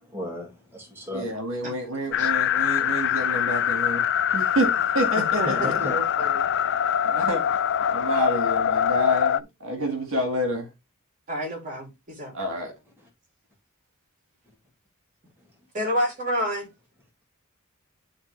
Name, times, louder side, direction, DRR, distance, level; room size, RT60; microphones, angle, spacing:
voice 1, 0.0-1.3 5.4-6.0, left 1 dB, 10° right, 2.4 m, -34 dB
voice 2, 1.1-4.1 4.3-5.6 7.0-7.4 7.9-10.7 12.3-12.7, equal, 65° right, 2.0 m, -28 dB
sound 1, 2.1-9.4, left 9 dB, 55° left, 0.4 m, -24 dB
voice 3, 5.2-6.4 11.3-12.3 15.7-16.7, equal, 35° right, 3.2 m, -29 dB
10.5 x 3.7 x 3.3 m
head